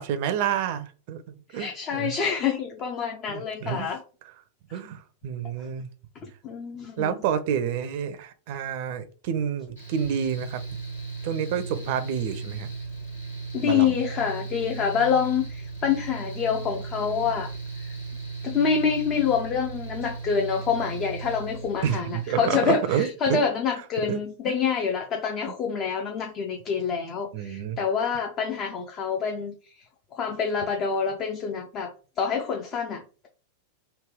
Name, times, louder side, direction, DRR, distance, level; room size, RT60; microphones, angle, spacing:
voice 1, 0.0-2.1 3.3-3.9 4.7-5.9 7.0-10.6 11.2-12.7 13.6-14.0 21.8-23.4 24.1-24.2 24.5-24.6 27.3-27.8, right 8 dB, 50° right, 0.5 m, -29 dB
voice 2, 1.5-4.0 4.7-4.8 6.2-7.1 13.5-17.5 17.8-17.9 18.4-29.5 30.1-33.3, left 6 dB, 35° left, 0.6 m, -27 dB
Mechanical fan, 9.7-22.3, right 4 dB, 75° left, 1.6 m, -36 dB
3.3 x 2.3 x 3.5 m
figure-of-eight pair, 90°, 0 cm